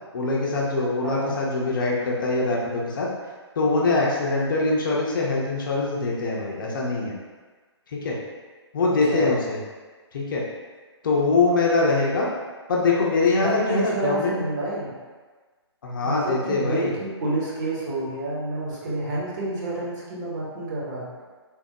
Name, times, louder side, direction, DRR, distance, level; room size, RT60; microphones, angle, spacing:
voice 1, 0.1-3.1 3.6-7.1 7.9-8.2 8.7-9.6 10.1-10.4 11.0-12.3 12.7-14.4 15.8-16.9, left 3 dB, 45° left, -3 dB, 0.6 m, -23 dB
voice 2, 1.0-1.4 9.0-9.3 13.4-14.9 16.0-21.1, right 2 dB, 40° right, -6 dB, 1.0 m, -28 dB
3.4 x 2.0 x 2.9 m, 1.4 s
figure-of-eight pair, 130°, 15 cm